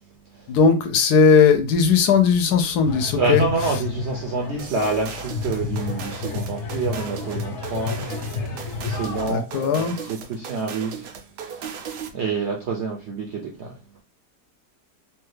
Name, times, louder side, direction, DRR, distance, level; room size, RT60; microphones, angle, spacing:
voice 1, 0.5-3.4 9.3-10.0, left 5 dB, 80° left, 1.1 m, -18 dB
sound 1, 2.8-9.3, left 4 dB, 60° left, 0.9 m, -31 dB
voice 2, 3.2-7.9 8.8-9.4 10.1-11.1 11.4-13.7, right 3 dB, 65° right, 0.6 m, -27 dB
sound 2, 4.6-12.2, right 7 dB, 85° right, 1.2 m, -37 dB
3.1 x 2.3 x 3.2 m
omnidirectional pair, 1.7 m